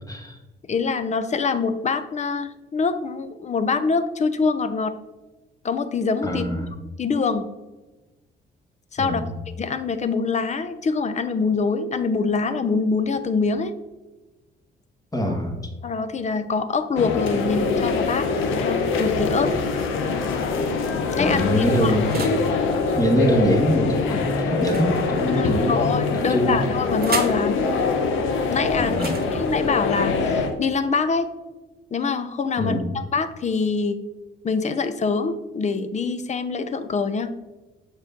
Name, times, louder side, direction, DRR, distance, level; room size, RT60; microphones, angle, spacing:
voice 1, 0.1-0.4 6.2-6.7 9.0-9.3 15.1-15.7 21.2-22.3 22.9-26.6 28.8-29.2 32.6-32.9, equal, 15° left, 2 dB, 1.3 m, -24 dB
voice 2, 0.7-5.0 5.6-6.7 7.0-7.5 8.9-9.2 9.6-13.7 15.8-19.5 21.2-22.0 25.3-27.7 28.5-31.3 31.9-34.0 34.4-37.3, left 4 dB, 35° left, 11 dB, 0.6 m, -24 dB
sound 1, 17.0-30.5, left 4 dB, 85° left, 0.8 m, -24 dB
sound 2, 19.3-20.1 20.9-22.5 24.5-25.6 26.5-27.5 28.8-30.8, right 5 dB, 50° right, 1.0 m, -36 dB
6.7 x 4.8 x 3.7 m, 1.1 s
cardioid pair, 90°, 20 cm